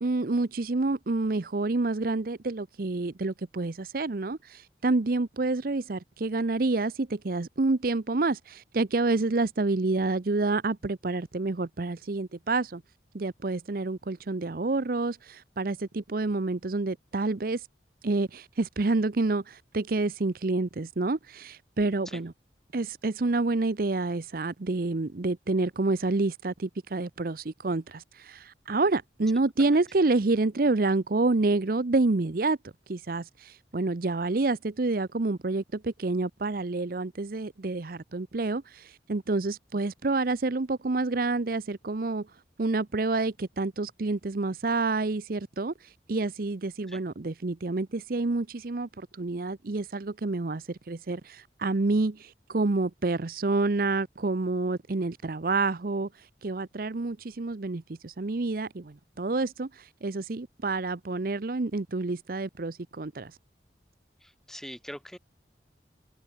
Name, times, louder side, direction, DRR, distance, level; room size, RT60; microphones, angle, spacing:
voice 1, 0.0-12.8 13.1-17.7 18.0-22.3 22.7-32.6 32.9-42.3 42.6-56.1 56.4-63.3, right 3 dB, 55° right, 0.7 m, -28 dB
voice 2, 64.2-65.2, equal, ahead, 3.7 m, -43 dB
head